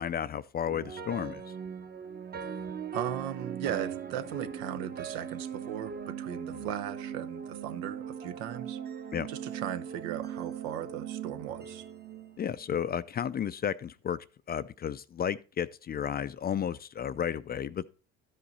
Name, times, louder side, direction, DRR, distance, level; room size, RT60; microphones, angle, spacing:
voice 1, 0.0-1.4 6.5-6.7 9.1-9.3 12.4-14.2 14.5-17.8, left 8 dB, 30° left, 0.4 m, -33 dB
sound 1, 0.6-12.9, right 8 dB, 30° right, 0.9 m, -39 dB
voice 2, 2.9-8.8 9.3-11.9, right 10 dB, 85° right, 0.8 m, -37 dB
12.5 x 5.5 x 4.1 m
supercardioid pair, 85°, 32 cm